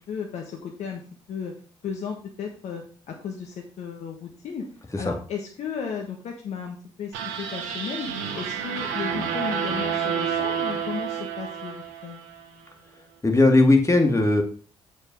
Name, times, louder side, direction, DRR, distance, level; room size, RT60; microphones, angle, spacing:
voice 1, 0.1-1.0 1.3-1.5 1.8-4.7 5.0-12.2, left 6 dB, 65° left, 3 dB, 1.5 m, -34 dB
sound 1, 7.1-12.4, right 7 dB, 80° right, 1.6 m, -29 dB
voice 2, 13.2-14.4, left 2 dB, 25° left, 4 dB, 2.3 m, -18 dB
8.3 x 5.5 x 5.3 m, 0.41 s
hypercardioid pair, 45°, 13 cm